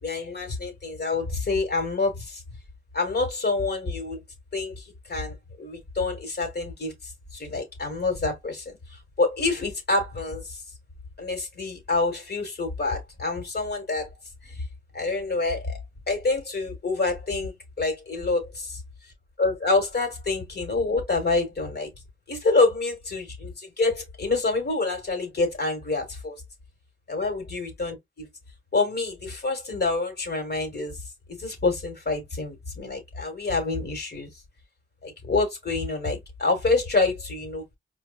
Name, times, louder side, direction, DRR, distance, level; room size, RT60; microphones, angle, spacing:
voice 1, 0.0-2.4 2.9-4.2 4.5-4.8 5.1-6.9 7.3-8.8 9.2-10.6 11.2-14.1 14.4-14.5 14.9-15.8 16.1-18.6 19.4-21.9 22.3-26.3 27.1-28.3 28.7-31.0 31.3-34.3 35.0-37.6, left 3 dB, 50° left, 1.6 m, -27 dB
4.4 x 2.3 x 2.3 m
cardioid pair, 45°, 21 cm